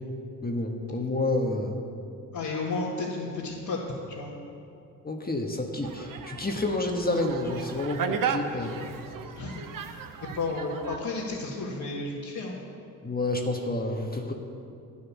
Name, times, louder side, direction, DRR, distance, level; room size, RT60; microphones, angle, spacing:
voice 1, 0.4-1.9 5.0-8.8 13.0-14.3, left 2 dB, 25° left, 2 dB, 1.3 m, -29 dB
voice 2, 2.3-3.8 4.1-4.3 9.3-9.6 10.3-12.5, left 3 dB, 70° left, -5 dB, 1.8 m, -32 dB
sound 1, 5.8-11.0, right 7 dB, 65° right, 1.0 m, -35 dB
11.5 x 9.4 x 7.2 m, 2.6 s
cardioid pair, 60°, 36 cm